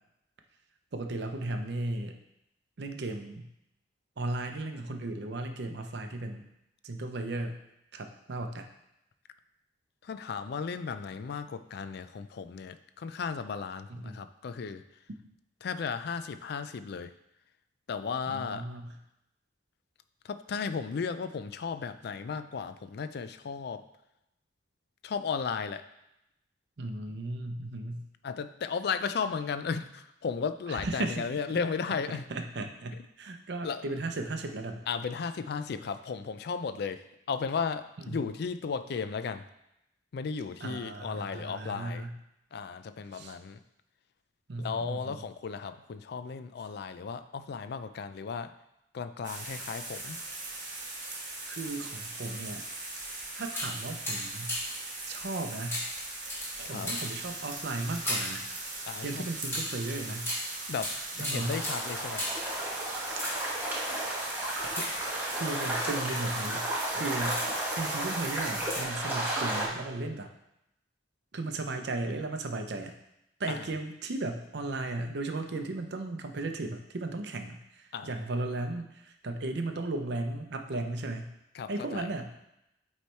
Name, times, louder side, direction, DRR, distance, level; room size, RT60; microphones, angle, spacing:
voice 1, 0.9-2.2 2.8-3.5 4.2-6.5 6.8-7.6 7.9-8.7 13.9-14.2 18.3-18.9 26.8-28.0 30.7-31.2 31.5-31.6 32.3-34.8 38.1-38.2 40.6-42.2 43.1-43.4 44.5-45.2 51.0-51.2 51.5-52.7 53.4-54.6 55.1-55.8 56.6-58.5 59.0-60.3 61.2-61.6 64.6-64.9 65.3-66.7 66.9-67.4 67.8-70.3 71.3-72.9 73.4-81.3 81.7-82.4, right 2 dB, 60° right, 6 dB, 0.6 m, -35 dB
voice 2, 10.0-14.8 15.6-17.1 17.9-18.7 20.2-23.9 25.0-25.8 27.1-27.2 28.2-32.3 33.6-33.9 34.9-39.5 40.1-42.1 42.5-43.6 44.6-48.5 48.9-50.2 56.6-56.9 58.9-59.3 60.7-62.3 66.5-66.6 73.5-73.7 77.9-78.1 81.5-82.1, left 5 dB, 60° left, 11 dB, 0.4 m, -35 dB
sound 1, 49.2-68.8, right 2 dB, 45° right, 1.5 m, -40 dB
sound 2, 52.9-53.1 53.5-54.9 55.7-58.5 59.5-62.5 63.0-63.7 64.6-65.5 66.1-66.4 66.9-67.7 68.6-69.1 69.3-69.4, equal, 15° left, 2.3 m, -36 dB
sound 3, 61.4-69.7, right 1 dB, 10° right, 1.1 m, -33 dB
8.2 x 3.2 x 4.4 m, 0.85 s
head